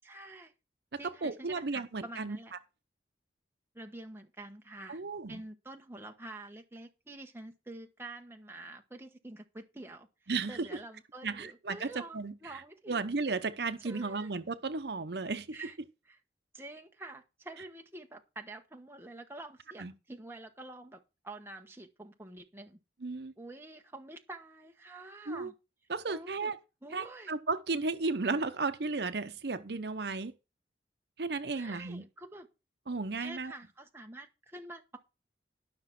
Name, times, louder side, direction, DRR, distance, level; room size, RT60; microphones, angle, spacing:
voice 1, 0.0-0.5 1.0-2.5 3.7-5.0 5.3-10.1 10.5-13.0 13.8-14.3 15.5-15.8 16.1-16.2 16.5-22.8 23.4-25.5 26.1-26.5 26.8-27.3 31.5-32.5 33.2-35.0, right 2 dB, 15° right, 1.2 m, -47 dB
voice 2, 0.9-2.4 4.9-5.4 10.3-10.8 11.2-11.9 12.1-15.6 19.8-19.9 23.0-23.3 25.3-25.5 25.9-26.6 26.9-30.3 31.2-32.0 32.9-33.5, right 3 dB, 70° right, 0.8 m, -34 dB
12.5 x 6.0 x 5.9 m
head